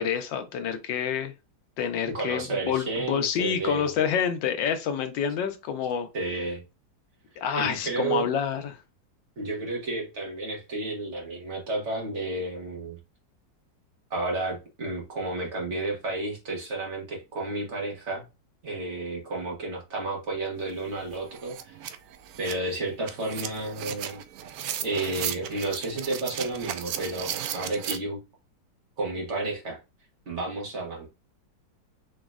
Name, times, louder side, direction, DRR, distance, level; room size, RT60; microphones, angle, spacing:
voice 1, 0.0-1.3 1.8-6.1 7.4-8.8, left 7 dB, 80° left, 1.4 m, -28 dB
voice 2, 2.1-3.9 6.1-6.6 7.6-8.3 9.4-13.0 14.1-18.2 18.6-21.8 22.4-24.2 24.8-28.2 29.0-29.8 30.3-31.1, right 2 dB, 40° right, 1.6 m, -31 dB
sound 1, 20.7-20.8 21.1-28.0, right 10 dB, 70° right, 0.9 m, -35 dB
5.2 x 3.0 x 2.4 m
omnidirectional pair, 2.0 m